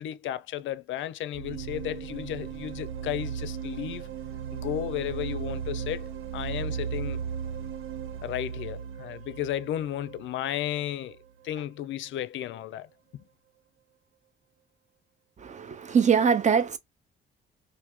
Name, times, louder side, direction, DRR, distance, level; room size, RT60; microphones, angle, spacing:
voice 1, 0.0-4.1 4.5-7.2 8.2-11.2 11.4-12.9 13.1-13.2, left 12 dB, 75° left, 0.5 m, -34 dB
sound 1, 1.3-11.1, right 7 dB, 90° right, 0.5 m, -36 dB
voice 2, 15.4-16.8, right 6 dB, 35° right, 0.6 m, -23 dB
3.3 x 2.6 x 3.0 m
cardioid pair, 90°, 20 cm